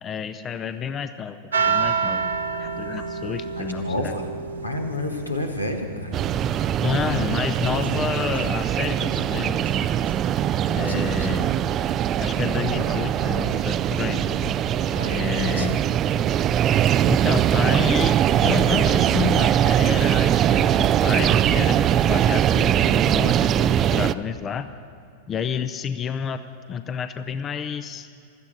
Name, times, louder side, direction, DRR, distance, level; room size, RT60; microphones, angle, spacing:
voice 1, 0.0-4.1 6.8-9.6 10.7-11.5 12.2-14.3 15.1-15.8 17.0-24.7 25.3-26.4 26.7-28.1, left 7 dB, 25° left, 11 dB, 0.5 m, -29 dB
sound 1, 1.5-17.5, right 5 dB, 75° right, 1.0 m, -33 dB
voice 2, 3.6-4.3 4.6-6.2 6.8-7.0 10.8-11.3 14.9-15.8, left 1 dB, 85° left, 3 dB, 1.5 m, -30 dB
sound 2, 6.1-24.1, right 10 dB, 30° right, 0.3 m, -21 dB
16.5 x 13.0 x 6.3 m, 2.6 s
figure-of-eight pair, 90°, 0 cm